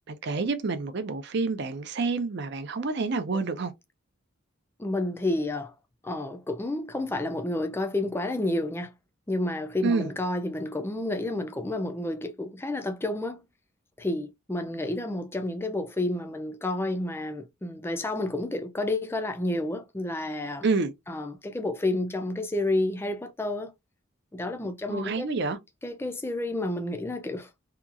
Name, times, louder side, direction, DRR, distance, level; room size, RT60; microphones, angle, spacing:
voice 1, 0.1-3.7 9.8-10.1 20.6-20.9 24.9-25.6, right 4 dB, 55° right, 0.5 m, -28 dB
voice 2, 4.8-5.7 6.0-8.9 9.3-13.4 14.0-20.6 21.1-23.7 24.3-25.3 25.8-27.5, left 1 dB, 10° left, 0.3 m, -30 dB
2.8 x 2.3 x 2.4 m
head